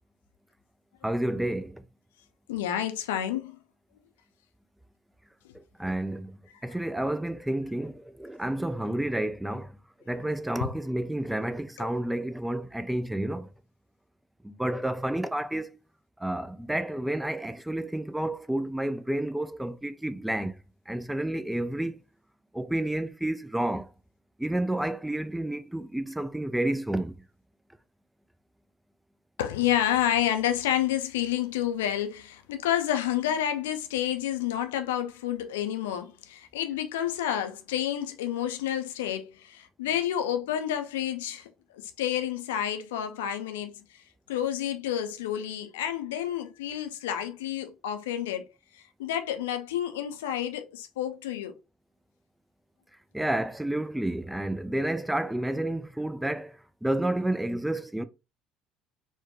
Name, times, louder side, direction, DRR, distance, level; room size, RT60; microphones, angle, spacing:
voice 1, 1.0-1.8 5.5-9.7 10.1-13.5 14.4-15.8 16.2-20.5 20.9-22.0 22.5-23.9 24.4-27.1 53.1-58.0, right 1 dB, 5° right, 0.3 m, -30 dB
voice 2, 2.5-3.6 6.6-6.7 10.6-10.7 11.8-11.9 29.4-43.8 44.3-48.4 48.7-51.5, left 11 dB, 70° left, 0.4 m, -29 dB
4.4 x 2.2 x 2.8 m
figure-of-eight pair, 60°, 0 cm